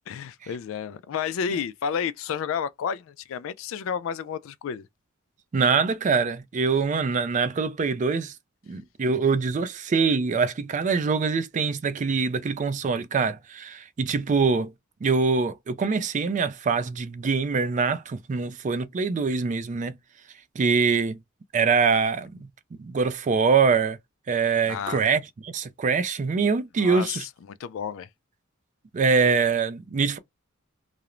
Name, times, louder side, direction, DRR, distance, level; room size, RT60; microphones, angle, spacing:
voice 1, 0.1-4.9 24.6-25.0 26.8-28.1, left 7 dB, 65° left, 0.3 m, -31 dB
voice 2, 5.5-8.4 8.7-14.7 15.0-20.0 20.6-21.2 21.5-22.5 22.8-24.0 24.3-27.2 28.9-30.2, right 5 dB, 35° right, 0.3 m, -24 dB
2.4 x 2.0 x 2.9 m
head